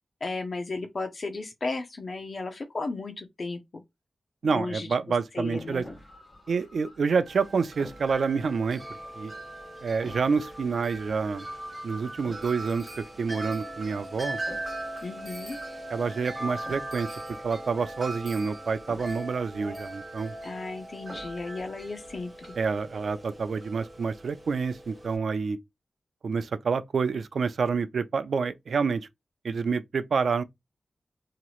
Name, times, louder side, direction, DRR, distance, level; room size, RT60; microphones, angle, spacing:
voice 1, 0.2-3.8 4.4-4.9 5.3-5.9 15.0-15.6 20.4-22.5, left 3 dB, 50° left, 0.5 m, -34 dB
voice 2, 4.4-5.8 6.5-8.8 9.2-9.3 9.8-11.5 11.8-14.4 15.9-17.1 17.4-20.4 22.6-25.6 26.2-29.1 29.4-30.4, right 5 dB, 75° right, 0.3 m, -28 dB
sound 1, 5.4-22.2, left 1 dB, 25° left, 1.4 m, -50 dB
Wind chime, 7.3-25.2, right 1 dB, 25° right, 1.0 m, -40 dB
3.0 x 2.8 x 2.4 m
wide cardioid pair, 120°, 0 cm